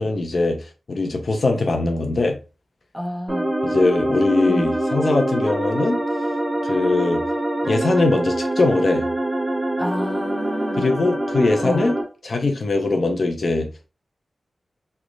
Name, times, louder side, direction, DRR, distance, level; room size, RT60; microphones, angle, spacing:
voice 1, 0.0-2.4 3.6-6.0 6.6-7.2 7.6-9.1 10.8-12.0 12.2-13.9, left 3 dB, 55° left, 0.6 m, -21 dB
voice 2, 2.9-3.5 4.5-4.7 9.8-10.9 11.6-11.9, equal, ahead, 0.7 m, -29 dB
sound 1, 3.3-12.0, right 1 dB, 30° right, 1.4 m, -24 dB
3.1 x 2.1 x 3.8 m
wide cardioid pair, 130°, 0 cm